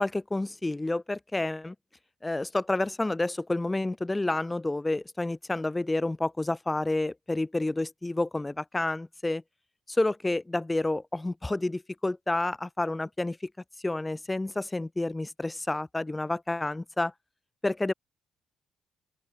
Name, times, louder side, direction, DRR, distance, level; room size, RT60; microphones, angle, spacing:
voice 1, 0.0-1.7 2.2-9.4 9.9-13.4 13.8-17.1 17.6-17.9, left 2 dB, 15° left, 1.6 m, -29 dB
open air
cardioid pair, 90°, 0 cm